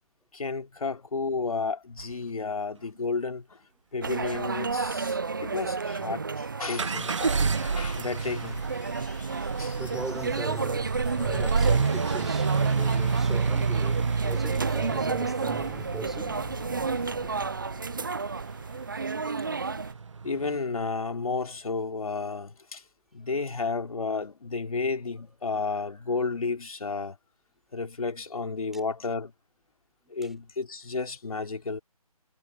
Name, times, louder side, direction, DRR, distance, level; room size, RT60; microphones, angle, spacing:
voice 1, 0.3-3.7 3.9-8.6 9.4-9.8 16.9-18.0 20.2-22.8 23.1-27.2 27.7-29.3 30.1-31.8, left 4 dB, 70° left, 2.9 m, -32 dB
sound 1, 2.0-2.1 6.8-20.6, right 5 dB, 55° right, 1.3 m, -30 dB
sound 2, 4.0-19.9, right 4 dB, 35° right, 0.6 m, -31 dB
sound 3, 7.1-19.1, left 9 dB, 25° left, 7.1 m, -52 dB
voice 2, 9.4-16.6 30.0-30.3, right 2 dB, ahead, 4.9 m, -40 dB
hypercardioid pair, 175°, 19 cm